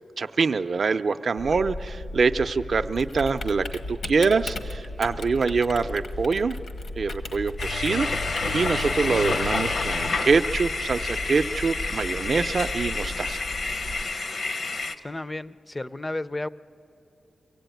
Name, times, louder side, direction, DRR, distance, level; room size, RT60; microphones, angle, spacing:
voice 1, 0.2-6.6 7.0-8.1 8.5-13.5, right 4 dB, 55° right, 9 dB, 0.5 m, -25 dB
Typing, 1.4-14.0, left 2 dB, 75° left, 1.3 m, -36 dB
sound 1, 7.6-15.0, left 3 dB, 60° left, 0.8 m, -29 dB
voice 2, 15.0-16.5, left 2 dB, 20° left, 16 dB, 0.4 m, -32 dB
24.0 x 16.5 x 9.2 m, 2.8 s
wide cardioid pair, 100°, 0 cm